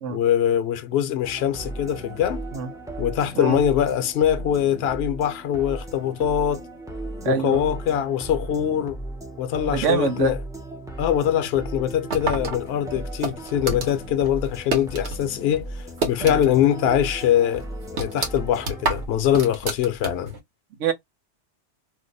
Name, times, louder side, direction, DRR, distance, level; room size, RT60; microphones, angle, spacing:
voice 1, 0.1-2.4 3.0-6.6 7.3-9.0 9.4-10.4 11.0-17.6 18.0-20.3, left 10 dB, 65° left, 0.8 m, -23 dB
sound 1, 1.2-19.1, right 1 dB, 5° right, 0.4 m, -36 dB
voice 2, 7.2-7.6 9.7-10.3 16.2-16.4 20.8-20.9, right 6 dB, 90° right, 1.1 m, -24 dB
sound 2, 12.1-15.2 15.5-16.7 17.0-17.1 17.6-20.4, right 3 dB, 65° right, 1.3 m, -29 dB
2.8 x 2.1 x 3.8 m
omnidirectional pair, 1.2 m